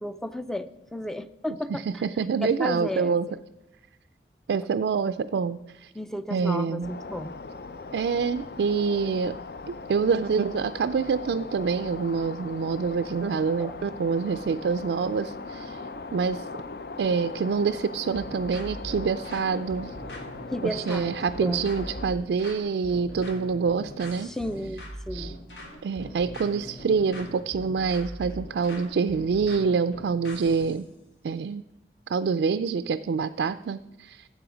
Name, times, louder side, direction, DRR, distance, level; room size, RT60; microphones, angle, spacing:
voice 1, 0.0-1.8 2.4-3.2 5.9-7.4 13.6-13.7 20.5-21.1 21.4-21.7 24.2-25.4, left 1 dB, ahead, 12 dB, 0.3 m, -33 dB
voice 2, 1.9-3.3 4.5-5.9 6.3-6.9 7.9-9.3 9.7-15.8 16.1-16.5 17.0-19.9 20.6-24.3 25.1-25.3 25.8-30.9 31.2-31.6 32.1-34.3, right 5 dB, 80° right, 11 dB, 0.3 m, -26 dB
sound 1, 6.8-22.1, left 3 dB, 60° left, 0.5 m, -39 dB
sound 2, 18.1-30.8, equal, 90° left, 2.3 m, -41 dB
12.5 x 7.8 x 5.0 m, 0.95 s
head